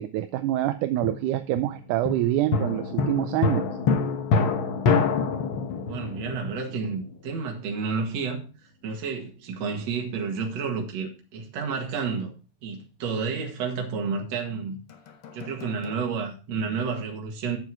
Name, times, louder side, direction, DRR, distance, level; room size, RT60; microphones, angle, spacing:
voice 1, 0.0-3.6, right 13 dB, 80° right, 2.0 m, -26 dB
sound 1, 1.0-7.4 14.9-16.0, left 4 dB, 75° left, 1.1 m, -27 dB
voice 2, 5.8-8.4 8.8-12.3 12.6-14.8 15.3-17.6, right 5 dB, 55° right, 2.8 m, -30 dB
9.7 x 6.9 x 4.6 m
omnidirectional pair, 3.8 m